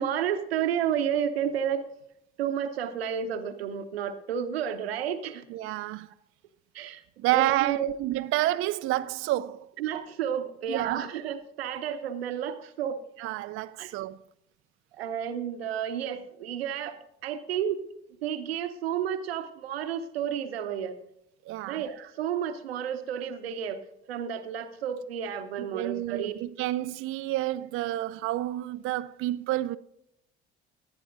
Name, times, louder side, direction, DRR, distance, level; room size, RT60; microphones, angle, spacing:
voice 1, 0.0-1.8 2.4-5.5 6.7-7.0 7.3-7.9 9.8-13.0 13.8-13.9 14.9-17.0 17.2-17.8 18.2-21.0 21.7-26.3, right 8 dB, 80° right, 0.9 m, -31 dB
voice 2, 5.5-6.1 7.2-9.7 10.7-11.1 13.2-14.2 21.5-21.8 25.6-29.8, right 15 dB, 45° right, 0.4 m, -29 dB
18.0 x 10.5 x 2.6 m
hypercardioid pair, 60°, 30 cm